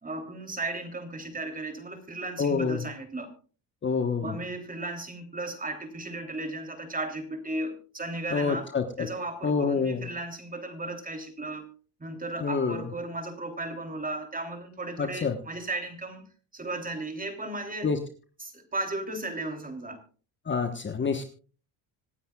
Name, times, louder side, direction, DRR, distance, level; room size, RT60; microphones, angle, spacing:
voice 1, 0.0-3.3 4.2-8.7 9.0-11.7 12.0-16.2 16.5-17.9 18.4-20.0, right 2 dB, 15° right, 6 dB, 3.3 m, -35 dB
voice 2, 2.4-2.8 3.8-4.4 8.3-9.1 9.4-10.1 12.4-12.8 15.0-15.4 17.8-18.0 20.5-21.2, left 5 dB, 25° left, 6 dB, 1.3 m, -27 dB
26.5 x 9.2 x 2.4 m, 0.38 s
supercardioid pair, 100°, 47 cm